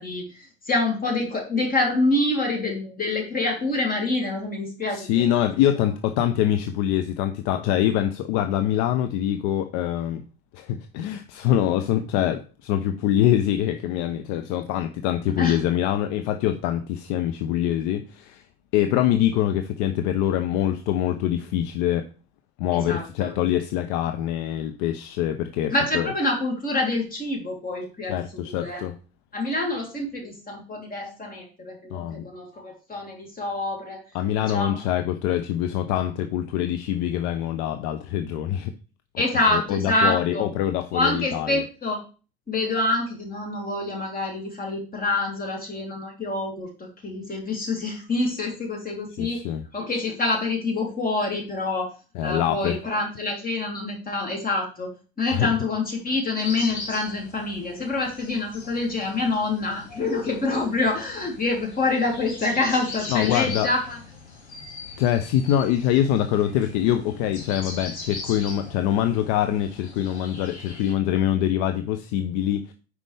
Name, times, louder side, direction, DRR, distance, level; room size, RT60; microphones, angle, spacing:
voice 1, 0.0-5.3 15.4-15.6 22.7-23.3 25.7-28.8 29.3-34.0 34.4-34.8 39.2-40.4 40.9-42.0 42.5-49.4 49.7-51.9 52.2-54.9 55.2-64.0, left 2 dB, 25° left, 0 dB, 3.4 m, -26 dB
voice 2, 4.9-10.2 10.5-18.4 18.7-22.1 22.6-26.1 28.1-28.9 31.9-32.3 34.1-38.7 39.5-41.6 49.2-49.6 52.1-52.8 55.2-55.5 63.1-63.7 65.0-72.7, left 11 dB, 60° left, 8 dB, 0.8 m, -24 dB
sound 1, 56.4-70.9, left 3 dB, 90° left, 2.2 m, -40 dB
9.1 x 5.0 x 3.5 m, 0.35 s
figure-of-eight pair, 65°, 33 cm